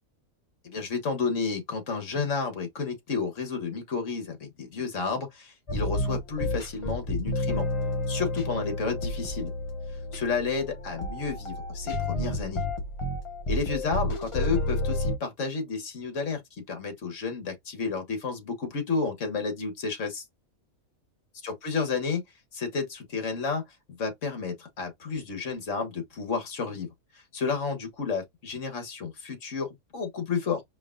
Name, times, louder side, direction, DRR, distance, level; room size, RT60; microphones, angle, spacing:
voice 1, 0.6-7.7 8.1-9.5 10.1-12.6 13.5-20.2 21.4-22.2 22.5-23.6 23.9-26.9 27.1-30.6, left 5 dB, 60° left, 1.6 m, -31 dB
sound 1, 5.7-15.2, left 1 dB, 30° left, 0.6 m, -30 dB
5.0 x 2.5 x 2.5 m
omnidirectional pair, 1.4 m